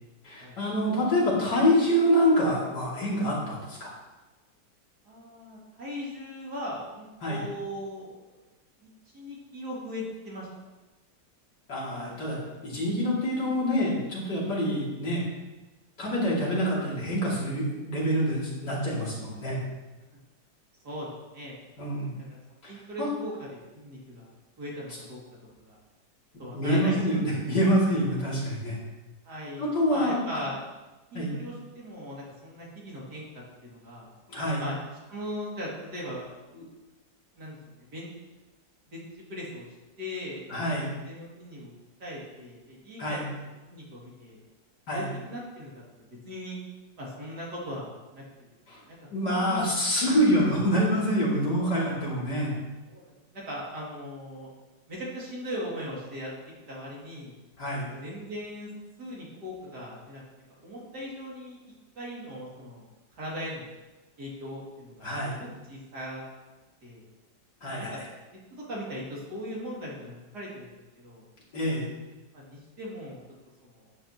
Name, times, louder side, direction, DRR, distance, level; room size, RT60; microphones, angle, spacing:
voice 1, 0.2-3.9 7.2-7.4 11.7-12.4 12.6-15.2 16.0-19.6 21.8-22.1 22.6-22.7 23.0-23.1 26.5-28.8 29.6-30.4 31.1-31.3 34.3-34.6 40.5-40.9 43.0-43.2 44.9-45.1 48.7-48.8 49.1-52.5 57.6-57.9 65.0-65.4 67.6-68.0 71.5-71.9, equal, 60° left, -6 dB, 3.3 m, -26 dB
voice 2, 5.0-8.2 8.8-10.5 20.8-21.1 21.3-21.5 22.0-22.4 22.7-23.5 23.7-25.2 25.6-25.8 26.4-27.1 29.2-30.6 31.1-33.3 33.6-34.1 34.6-34.8 35.1-36.7 37.4-38.1 38.9-39.7 40.0-41.7 42.0-43.2 43.6-44.4 44.9-45.7 46.2-46.6 47.0-48.2 48.8-49.0 49.2-49.7 52.9-54.5 54.9-56.3 56.7-57.3 57.9-58.7 59.0-60.2 60.6-61.6 61.9-62.8 63.1-63.7 64.2-66.2 66.8-67.0 67.7-68.0 68.3-70.7 71.0-71.2 72.3-73.2 73.7-73.9, equal, 60° right, -5 dB, 3.2 m, -39 dB
11.5 x 9.2 x 3.0 m, 1.1 s
omnidirectional pair, 2.0 m